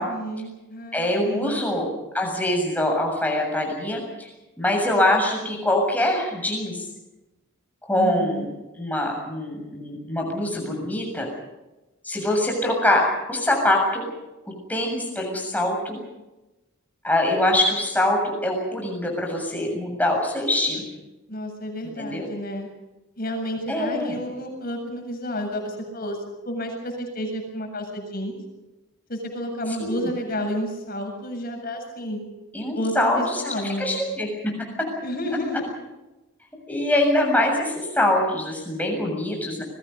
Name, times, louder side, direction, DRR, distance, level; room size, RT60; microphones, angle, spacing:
voice 1, 0.0-1.6 7.9-8.5 21.3-22.7 23.2-26.2 26.4-28.3 29.1-32.2 32.7-34.0 35.0-35.7, equal, 40° left, 3 dB, 7.6 m, -31 dB
voice 2, 0.9-4.3 4.6-6.8 7.8-8.5 8.8-11.3 12.0-14.1 14.7-16.0 17.0-20.9 22.0-22.3 23.7-24.2 29.8-30.1 32.5-34.5 34.8-34.9 36.7-39.6, left 1 dB, 5° left, 1 dB, 7.1 m, -24 dB
29.5 x 22.0 x 5.4 m, 1.0 s
head